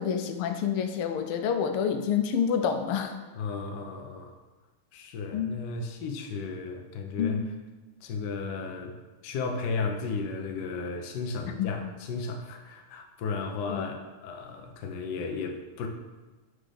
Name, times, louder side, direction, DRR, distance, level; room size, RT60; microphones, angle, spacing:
voice 1, 0.0-3.1 5.3-5.6 7.2-7.4 11.6-11.8 13.7-13.9, left 7 dB, 90° left, 7 dB, 1.6 m, -28 dB
voice 2, 3.4-4.3 4.9-7.4 8.0-9.0 9.2-15.9, left 4 dB, 65° left, 3 dB, 1.2 m, -34 dB
6.0 x 5.0 x 5.0 m, 1.2 s
omnidirectional pair, 2.4 m